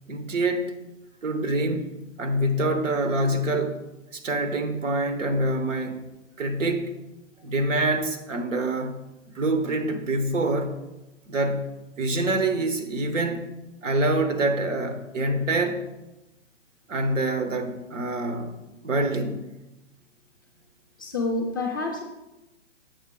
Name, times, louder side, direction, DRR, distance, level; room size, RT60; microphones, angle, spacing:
voice 1, 0.1-0.8 1.2-3.8 4.1-6.0 6.4-6.9 7.4-9.0 9.3-10.8 11.3-13.5 13.8-15.8 16.9-18.6 18.8-19.5, right 2 dB, 85° right, 7 dB, 1.1 m, -26 dB
voice 2, 21.0-22.0, left 2 dB, 20° left, 0 dB, 0.4 m, -28 dB
7.2 x 5.7 x 3.6 m, 0.98 s
hypercardioid pair, 155°, 37 cm